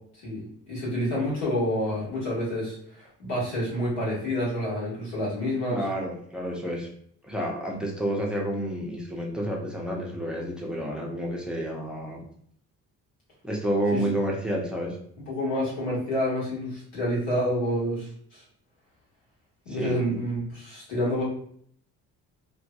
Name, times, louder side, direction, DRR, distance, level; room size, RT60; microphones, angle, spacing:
voice 1, 0.2-5.8 15.3-18.4 19.6-21.2, equal, 65° left, -7 dB, 1.4 m, -28 dB
voice 2, 5.7-6.9 7.2-12.2 13.4-15.0 19.7-19.9, right 1 dB, ahead, -2 dB, 0.6 m, -29 dB
2.6 x 2.2 x 2.3 m, 0.63 s
figure-of-eight pair, 45°, 44 cm